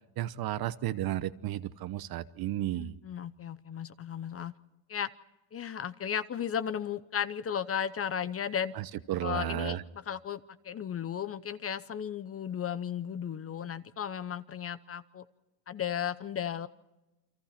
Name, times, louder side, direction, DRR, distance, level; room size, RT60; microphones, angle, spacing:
voice 1, 0.2-2.9 8.8-9.8, right 13 dB, 45° right, 14 dB, 1.0 m, -33 dB
voice 2, 2.8-4.5 4.9-5.1 5.5-8.7 9.2-15.2 15.7-16.7, left 8 dB, 30° left, 14 dB, 0.8 m, -35 dB
29.0 x 24.0 x 4.4 m, 1.0 s
supercardioid pair, 110°, 49 cm